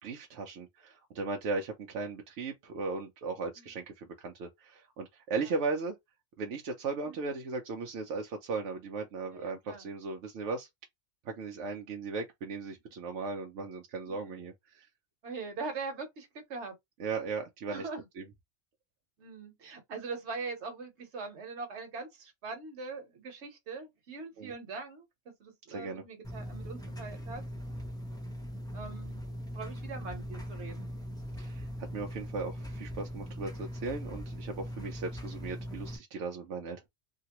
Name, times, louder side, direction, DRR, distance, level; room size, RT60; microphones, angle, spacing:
voice 1, 0.0-6.0 6.4-10.7 11.2-14.9 17.0-17.9 18.2-18.3 24.4-24.5 25.7-26.0 31.4-36.9, right 4 dB, 90° right, 1.0 m, -37 dB
voice 2, 9.3-9.9 14.0-14.4 15.2-16.8 17.7-18.0 19.2-27.4 28.7-29.2 29.5-30.9, right 4 dB, 75° right, 1.3 m, -42 dB
sound 1, 26.2-36.0, equal, 5° left, 0.6 m, -40 dB
2.8 x 2.5 x 2.9 m
omnidirectional pair, 1.2 m